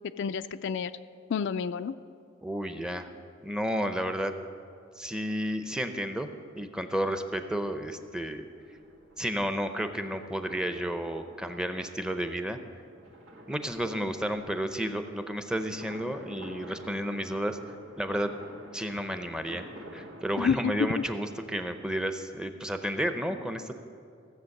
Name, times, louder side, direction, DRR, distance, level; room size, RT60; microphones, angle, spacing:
voice 1, 0.2-0.9 1.3-1.9 20.4-21.0, left 6 dB, 60° left, 11 dB, 0.4 m, -29 dB
voice 2, 2.4-3.1 3.4-4.3 5.0-6.3 6.6-8.4 9.2-12.6 13.5-17.6 18.0-18.3 18.7-23.7, equal, 5° right, 8 dB, 0.6 m, -32 dB
sound 1, 8.0-20.2, right 1 dB, 90° right, 2.0 m, -50 dB
15.5 x 7.6 x 6.5 m, 2.4 s
head